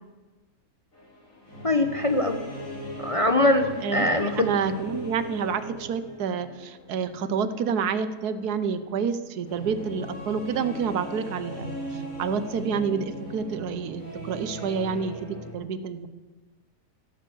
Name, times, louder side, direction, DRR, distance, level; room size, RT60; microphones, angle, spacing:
sound 1, 0.9-15.5, equal, 60° left, 4.3 m, -39 dB
voice 1, 1.6-2.4 3.0-4.5, left 1 dB, 30° left, 6 dB, 0.7 m, -22 dB
voice 2, 3.8-11.7 12.2-16.1, right 6 dB, 80° right, 13 dB, 1.4 m, -28 dB
16.0 x 9.2 x 7.8 m, 1.2 s
omnidirectional pair, 1.6 m